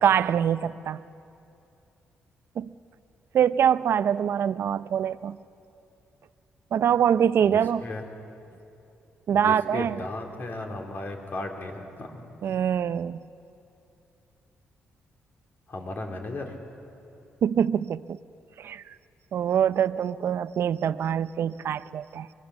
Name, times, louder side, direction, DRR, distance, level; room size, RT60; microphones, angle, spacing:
voice 1, 0.0-1.0 2.6-2.7 3.3-5.4 6.7-7.8 9.3-10.0 12.4-13.2 17.4-18.2 18.6-18.8 19.3-22.3, right 8 dB, 65° right, 0.6 m, -24 dB
voice 2, 7.4-8.0 9.3-12.2 15.7-16.5, left 2 dB, 45° left, 3.3 m, -35 dB
24.5 x 21.5 x 7.2 m
cardioid pair, 100°, 4 cm